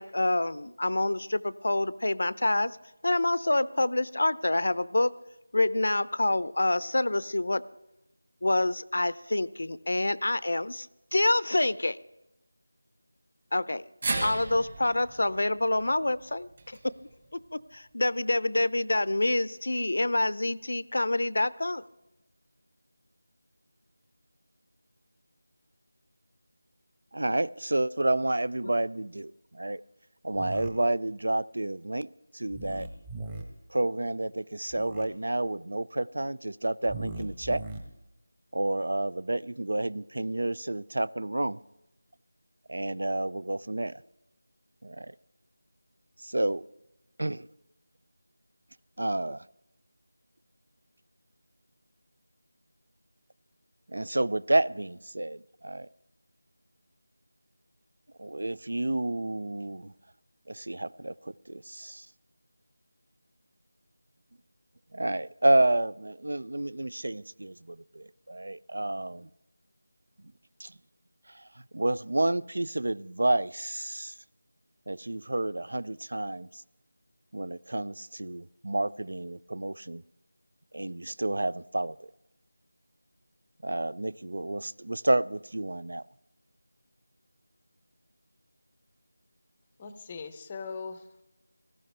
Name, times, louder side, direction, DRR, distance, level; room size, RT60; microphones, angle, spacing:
voice 1, 0.0-2.8 3.0-5.1 5.5-7.6 8.4-10.9 11.1-12.0 13.5-13.8 14.2-16.8 17.5-21.8, left 2 dB, 60° left, 0.6 m, -27 dB
sound 1, 14.0-18.3 18.6-18.7 19.9-20.0, right 3 dB, 30° right, 1.6 m, -38 dB
voice 2, 27.1-29.8 30.2-32.1 32.3-32.9 33.7-37.6 38.5-41.6 42.7-44.0 44.8-45.1 46.2-46.6 47.2-47.5 49.0-49.4 53.9-55.9 58.2-59.9 60.5-62.1 64.9-69.3 70.6-70.7 71.3-71.5 71.7-74.1 74.9-76.6 77.3-80.0 80.7-82.1 83.6-86.0, right 1 dB, 70° right, 0.4 m, -30 dB
sound 2, 30.3-30.7 32.5-33.4 34.7-35.1 36.8-37.8, right 2 dB, 10° right, 1.0 m, -39 dB
voice 3, 89.8-91.2, left 5 dB, 15° left, 0.6 m, -40 dB
18.0 x 15.0 x 3.4 m
figure-of-eight pair, 175°, 0 cm